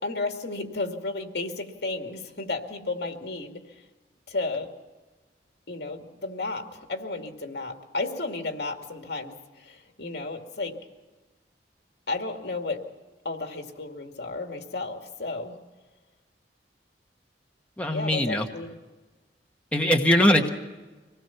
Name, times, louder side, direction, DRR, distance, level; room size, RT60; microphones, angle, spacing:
voice 1, 0.0-3.8 4.3-4.7 5.7-10.8 12.1-12.8 13.2-15.6 17.9-18.7, left 3 dB, 65° left, 4 dB, 2.4 m, -33 dB
voice 2, 17.8-18.5 19.7-20.5, left 1 dB, 10° left, 1 dB, 1.3 m, -21 dB
25.0 x 19.0 x 5.9 m, 1.2 s
head